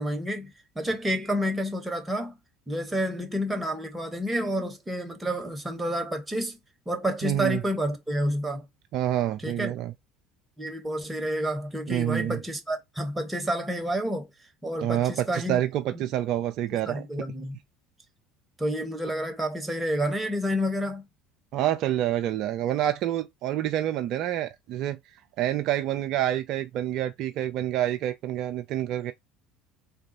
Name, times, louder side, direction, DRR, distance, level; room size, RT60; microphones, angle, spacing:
voice 1, 0.0-2.4 2.7-6.6 6.9-8.6 9.4-9.7 10.6-14.3 14.6-15.6 15.9-16.1 16.9-17.6 18.6-21.0, equal, 10° right, 1.0 m, -29 dB
voice 2, 7.2-7.6 8.9-9.9 11.9-12.4 14.8-17.1 21.5-25.0 25.4-29.1, right 12 dB, 55° right, 0.3 m, -27 dB
3.6 x 2.3 x 2.8 m
figure-of-eight pair, 65°, 0 cm